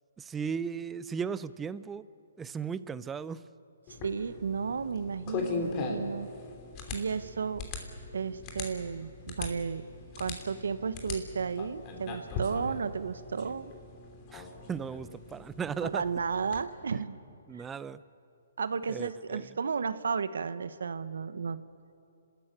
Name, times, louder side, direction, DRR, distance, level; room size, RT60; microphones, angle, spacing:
voice 1, 0.2-2.1 2.4-3.5 14.3-16.0 17.5-18.0 18.9-19.6, right 6 dB, 10° right, 16 dB, 0.5 m, -36 dB
sound 1, 3.9-16.6, left 4 dB, 30° left, 3.1 m, -40 dB
voice 2, 4.0-6.3 6.9-7.7 8.1-9.8 10.2-13.7 15.8-17.2 17.5-17.7 18.6-21.6, right 5 dB, 75° right, 14 dB, 1.1 m, -33 dB
29.5 x 13.5 x 9.0 m, 2.7 s
hypercardioid pair, 145°, 0 cm